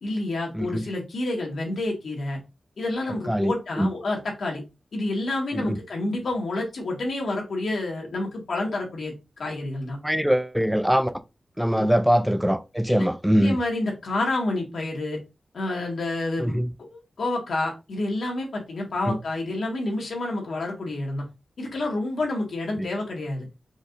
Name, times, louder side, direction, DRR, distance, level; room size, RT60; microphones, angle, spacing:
voice 1, 0.0-2.4 2.8-4.6 4.9-10.0 11.7-11.9 12.9-13.1 13.4-15.2 15.5-16.6 16.9-21.2 21.6-23.5, left 2 dB, 85° left, 1.8 m, -29 dB
voice 2, 0.5-0.9 3.3-3.9 5.5-5.8 10.0-11.1 11.6-13.6 16.4-16.7 19.1-19.2 22.8-22.9, equal, 5° right, 0.3 m, -23 dB
5.0 x 2.6 x 3.8 m
wide cardioid pair, 125°, 0 cm